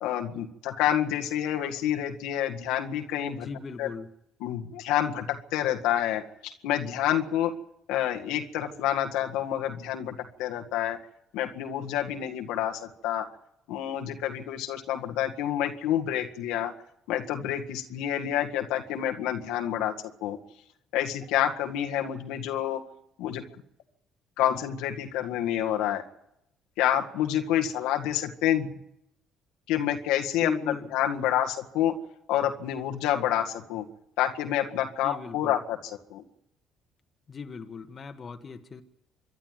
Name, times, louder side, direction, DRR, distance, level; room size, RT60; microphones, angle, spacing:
voice 1, 0.0-3.5 3.8-3.9 4.4-7.5 7.9-11.0 11.3-13.3 13.7-16.7 17.1-19.9 20.2-20.4 20.9-22.8 23.2-23.4 24.4-26.0 26.8-28.7 29.7-31.9 32.3-33.9 34.2-36.2, left 11 dB, 75° left, 3 dB, 1.8 m, -28 dB
voice 2, 3.4-4.1 30.4-30.9 35.0-35.6 37.3-38.8, left 5 dB, 40° left, 7 dB, 1.7 m, -36 dB
27.0 x 11.5 x 9.2 m, 0.79 s
hypercardioid pair, 60°, 0 cm